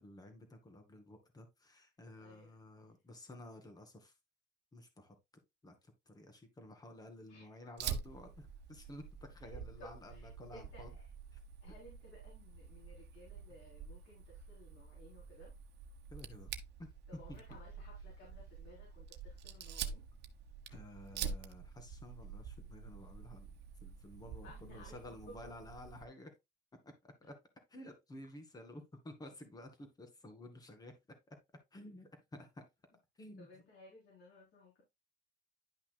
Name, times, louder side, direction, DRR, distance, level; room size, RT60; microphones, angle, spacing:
voice 1, 0.0-4.1 4.7-5.2 5.6-5.7 6.1-10.9 16.1-16.5 16.8-16.9 17.3-17.4 20.7-23.5 23.8-26.3 26.8-27.4 27.7-30.9 31.3-31.4 31.7-32.6 33.2-33.5, left 1 dB, 20° left, 2.0 m, -53 dB
voice 2, 2.1-2.6 7.3-7.8 9.8-11.1 11.6-15.5 17.1-20.0 20.7-20.8 21.2-21.3 24.4-25.5 33.4-34.8, left 1 dB, 70° left, 3.7 m, -58 dB
Fire, 7.8-26.0, right 7 dB, 70° right, 1.1 m, -47 dB
11.0 x 5.8 x 2.2 m
cardioid pair, 155°, 18 cm